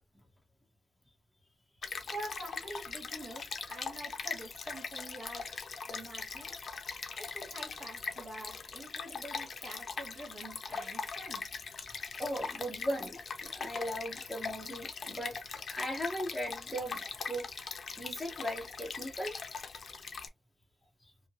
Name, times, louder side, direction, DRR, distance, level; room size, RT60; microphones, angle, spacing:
Stream, 1.8-20.3, left 5 dB, 50° left, 0.5 m, -41 dB
voice 1, 2.1-5.6 5.9-6.5 7.2-11.4, right 1 dB, 50° right, 1.7 m, -46 dB
voice 2, 12.2-15.4 15.7-17.4 18.0-19.4 21.0-21.1, equal, 5° left, 0.8 m, -38 dB
2.6 x 2.6 x 2.8 m
wide cardioid pair, 150°, 0 cm